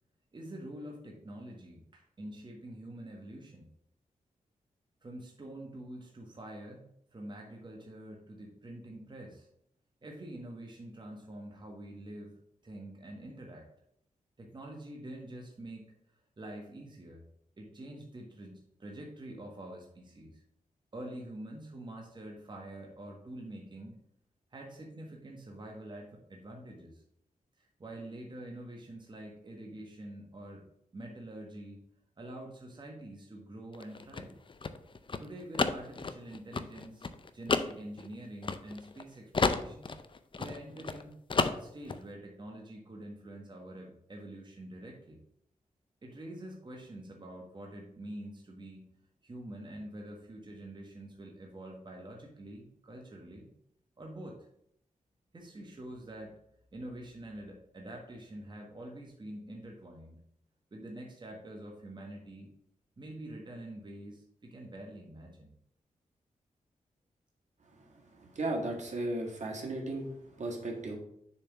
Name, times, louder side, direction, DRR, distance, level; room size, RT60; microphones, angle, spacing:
voice 1, 0.3-3.7 5.0-9.5 10.0-12.3 12.6-13.7 14.4-17.2 17.6-20.4 20.9-24.0 24.5-27.0 27.6-30.6 30.9-31.8 32.2-34.3 35.2-37.1 37.3-39.9 40.4-41.2 41.5-45.2 46.0-48.9 49.2-53.5 54.0-54.4 55.3-56.3 56.7-60.2 60.7-62.5 63.0-65.5, right 1 dB, 35° right, 0 dB, 1.3 m, -46 dB
sound 1, 33.7-39.0 39.3-41.0 41.3-42.0, left 4 dB, 40° left, 0.5 m, -32 dB
voice 2, 67.8-71.0, right 2 dB, 60° right, 0 dB, 1.7 m, -36 dB
6.9 x 3.4 x 5.9 m, 0.72 s
cardioid pair, 75°, 13 cm